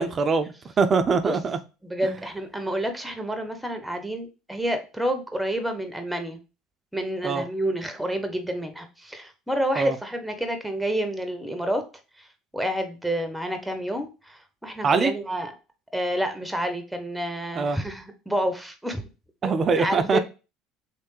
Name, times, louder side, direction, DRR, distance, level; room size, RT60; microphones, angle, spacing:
voice 1, 0.0-1.6 2.0-2.1 7.2-7.4 9.8-10.0 14.8-15.1 17.6-17.8 19.4-20.2, right 5 dB, 35° right, 0.4 m, -23 dB
voice 2, 1.8-6.4 6.9-11.8 12.2-12.3 12.5-15.5 15.9-19.0 19.4-20.2, equal, 5° right, 0.8 m, -29 dB
3.2 x 3.1 x 3.1 m
hypercardioid pair, 80°, 0 cm